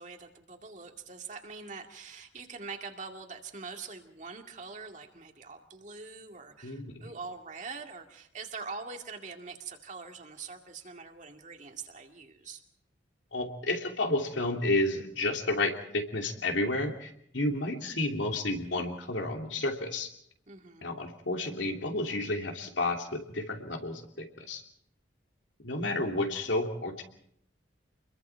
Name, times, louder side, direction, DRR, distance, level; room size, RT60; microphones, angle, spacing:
voice 1, 0.0-12.6 20.5-20.9, right 4 dB, 40° right, 4 dB, 2.3 m, -44 dB
voice 2, 6.6-6.9 13.3-20.1 20.8-24.6 25.6-27.0, left 2 dB, 75° left, 3 dB, 3.0 m, -31 dB
28.5 x 22.0 x 4.7 m, 0.70 s
head